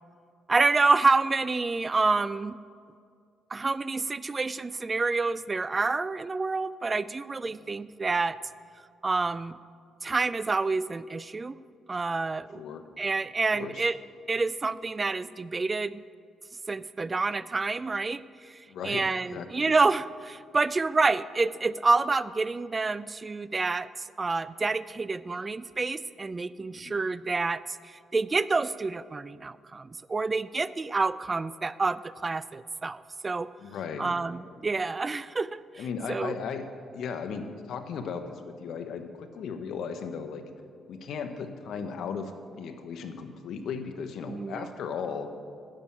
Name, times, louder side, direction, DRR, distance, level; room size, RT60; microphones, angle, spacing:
voice 1, 0.5-2.6 3.5-8.4 9.0-9.5 10.0-11.6 11.9-12.6 13.0-14.0 14.3-16.0 16.7-23.9 24.2-33.5 34.0-35.8 36.1-36.3 44.3-44.7, right 3 dB, 30° right, 17 dB, 0.3 m, -28 dB
voice 2, 12.5-12.8 13.5-13.9 18.7-19.0 19.3-19.7 26.7-27.0 33.6-34.1 35.8-40.4 40.9-42.3 42.6-45.3, left 6 dB, 70° left, 8 dB, 1.0 m, -36 dB
10.0 x 7.3 x 8.7 m, 2.2 s
cardioid pair, 90°, 0 cm